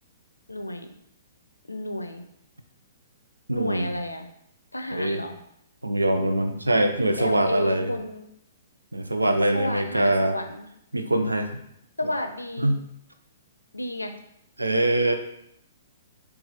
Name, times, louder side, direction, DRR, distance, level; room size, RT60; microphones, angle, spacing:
voice 1, 0.5-0.9 1.7-2.2 3.5-4.3 4.7-5.3 7.2-8.3 9.5-10.7 12.0-12.8 13.7-14.1, left 1 dB, 90° left, 6 dB, 0.5 m, -31 dB
voice 2, 3.5-3.9 4.9-5.2 5.8-7.9 8.9-10.3 10.9-11.5 12.6-12.8 14.6-15.1, right 1 dB, 85° right, 6 dB, 0.5 m, -23 dB
4.8 x 2.3 x 4.0 m, 0.75 s
figure-of-eight pair, 115°, 0 cm